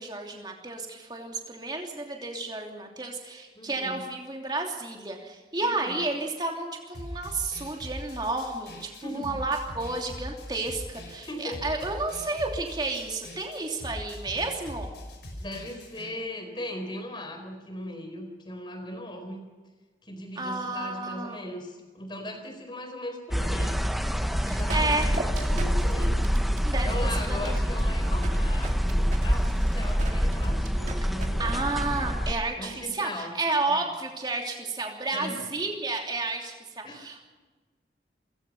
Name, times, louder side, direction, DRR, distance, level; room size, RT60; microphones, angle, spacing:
voice 1, 0.0-14.9 20.4-21.4 24.4-25.1 26.6-26.9 27.3-27.6 31.4-37.3, right 3 dB, 25° right, 1 dB, 2.9 m, -31 dB
voice 2, 3.5-4.0 5.6-6.0 8.9-9.4 10.9-11.0 11.3-11.6 15.3-19.4 20.0-23.8 24.4-26.2 26.8-31.7 32.6-33.3 33.7-33.9 35.1-35.5 36.8-37.3, left 1 dB, 25° left, 5 dB, 4.2 m, -38 dB
sound 1, 6.9-16.1, equal, 85° left, 5.9 m, -41 dB
sound 2, 23.3-32.3, equal, ahead, 1.0 m, -26 dB
sound 3, 24.3-31.3, right 1 dB, 40° right, 2.2 m, -32 dB
29.5 x 16.0 x 5.5 m, 1.3 s
head